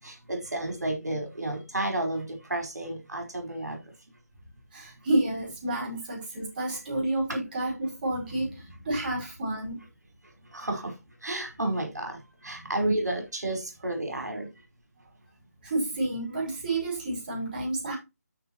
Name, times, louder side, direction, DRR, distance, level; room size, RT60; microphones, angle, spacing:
voice 1, 0.0-3.8 10.5-10.9 11.2-14.5, right 1 dB, 80° right, 4.9 m, -31 dB
voice 2, 4.7-9.8 12.5-12.7 15.6-18.0, right 2 dB, 30° right, 5.3 m, -30 dB
13.5 x 5.0 x 3.1 m
figure-of-eight pair, 160°, 9 cm